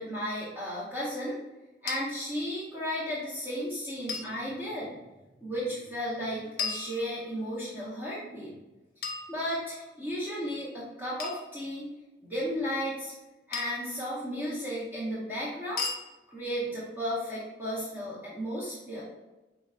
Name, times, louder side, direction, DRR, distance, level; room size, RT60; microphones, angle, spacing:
voice 1, 0.0-1.4 1.8-4.9 5.4-8.5 9.3-11.9 12.2-13.1 13.5-15.9 16.3-19.0, equal, 10° right, -9 dB, 0.9 m, -34 dB
sound 1, 1.9-2.0 4.1-4.3 6.6-7.5 9.0-9.9 11.2-11.5 13.5-13.9 15.8-16.0, left 5 dB, 55° left, 0.7 m, -35 dB
5.0 x 3.2 x 2.4 m, 1.1 s
head